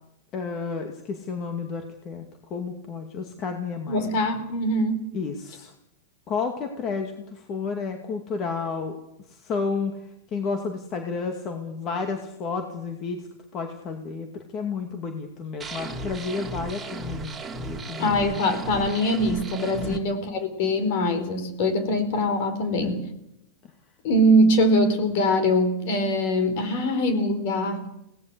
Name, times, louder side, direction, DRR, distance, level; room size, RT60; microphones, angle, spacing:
voice 1, 0.3-4.1 5.1-5.7 6.3-9.0 9.3-18.5 19.9-20.0 22.8-23.0, left 5 dB, 30° left, 5 dB, 2.3 m, -31 dB
voice 2, 3.9-5.0 18.0-23.0 24.0-27.8, equal, 55° left, 10 dB, 4.6 m, -23 dB
sound 1, 15.6-20.0, right 3 dB, 10° right, 2.8 m, -35 dB
23.0 x 18.0 x 8.0 m, 0.82 s
supercardioid pair, 145°, 0 cm